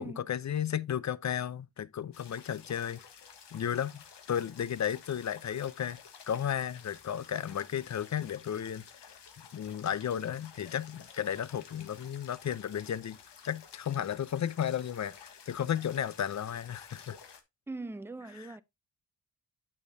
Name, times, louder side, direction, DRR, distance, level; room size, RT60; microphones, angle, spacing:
voice 1, 0.0-3.0 3.5-6.0 6.3-9.2 9.5-13.2 13.4-17.2 18.4-18.6, left 9 dB, 45° left, 0.5 m, -34 dB
sound 1, 2.1-17.4, left 7 dB, 80° left, 1.3 m, -53 dB
voice 2, 17.7-18.6, right 2 dB, 5° right, 0.5 m, -41 dB
8.7 x 6.4 x 2.6 m
cardioid pair, 85°, 41 cm